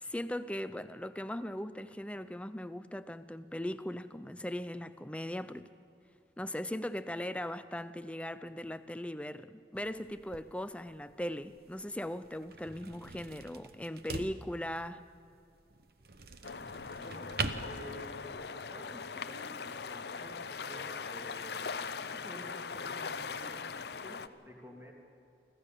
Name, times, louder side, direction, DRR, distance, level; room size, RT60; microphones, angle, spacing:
voice 1, 0.0-5.7 6.4-15.0, left 1 dB, 5° left, 13 dB, 0.5 m, -39 dB
sound 1, 9.7-18.5, right 4 dB, 60° right, 1.0 m, -44 dB
sound 2, 16.4-24.3, left 5 dB, 70° left, 0.7 m, -40 dB
voice 2, 17.0-21.6 22.0-24.9, equal, 15° right, -1 dB, 2.9 m, -51 dB
25.0 x 15.5 x 7.0 m, 2.5 s
head